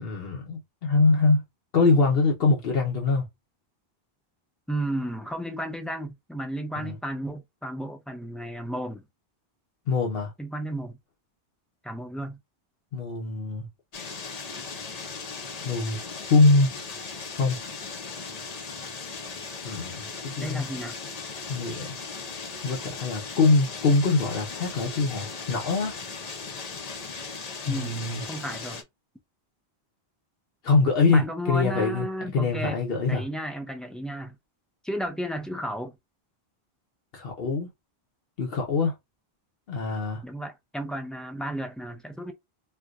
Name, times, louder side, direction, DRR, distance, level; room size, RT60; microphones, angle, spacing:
voice 1, 0.0-1.4 1.7-3.3 6.8-7.0 9.9-10.3 12.9-13.7 15.6-16.0 16.3-16.7 17.3-17.6 19.6-20.7 21.5-21.9 22.6-26.0 27.6-28.2 30.6-32.1 32.3-33.2 37.1-37.7 38.4-38.9 39.7-40.2, left 3 dB, 70° left, 1.0 m, -23 dB
voice 2, 4.7-9.0 10.4-11.0 11.8-12.4 20.4-21.0 27.7-28.0 28.3-28.8 31.1-32.8 33.1-34.4 34.8-36.0 40.2-42.3, right 1 dB, ahead, 0.4 m, -33 dB
sound 1, 13.9-28.8, left 4 dB, 45° left, 0.7 m, -38 dB
4.5 x 2.2 x 2.4 m
omnidirectional pair, 1.0 m